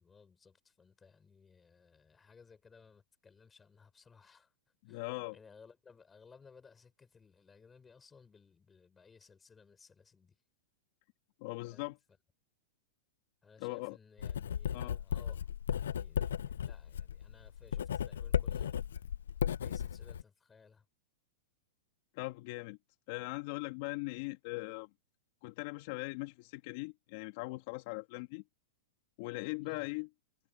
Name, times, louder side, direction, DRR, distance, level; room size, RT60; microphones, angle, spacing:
voice 1, 0.0-4.5 4.9-10.4 11.6-12.0 13.4-19.1 19.6-20.9 29.6-29.9, left 5 dB, 15° left, 6.1 m, -61 dB
voice 2, 4.8-5.4 11.4-12.0 13.6-14.0 14.7-15.0 22.1-22.8 23.1-24.9 25.4-28.4 29.2-30.1, left 25 dB, 55° left, 1.9 m, -40 dB
Writing, 14.2-20.2, left 9 dB, 80° left, 0.5 m, -35 dB
hypercardioid pair, 115°, 0 cm